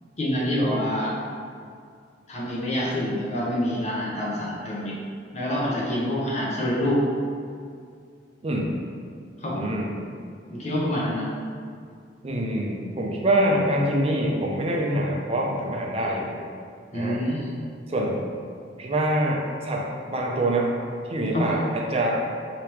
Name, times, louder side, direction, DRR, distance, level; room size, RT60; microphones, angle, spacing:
voice 1, 0.2-1.2 2.3-5.0 5.3-7.0 9.4-9.7 10.5-11.3 16.9-17.5 21.3-21.6, equal, 40° left, -5 dB, 0.7 m, -26 dB
voice 2, 8.4-8.7 9.5-9.9 12.2-16.4 16.9-17.2 17.9-18.2 18.8-20.7 21.1-22.2, right 1 dB, 35° right, -1 dB, 0.5 m, -25 dB
3.3 x 2.9 x 4.5 m, 2.2 s
head